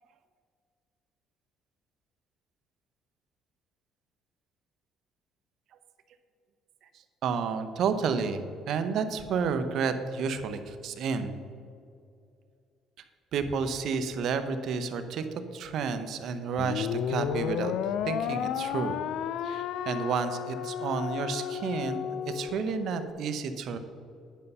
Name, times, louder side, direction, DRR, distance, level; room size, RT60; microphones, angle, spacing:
voice 1, 7.2-11.4 13.3-15.2 15.5-17.7 18.1-19.0 19.4-23.8, right 5 dB, 65° right, 9 dB, 0.8 m, -31 dB
sound 1, 16.6-23.1, left 9 dB, 75° left, 0.4 m, -32 dB
10.5 x 5.4 x 5.5 m, 2.4 s
cardioid pair, 100°, 0 cm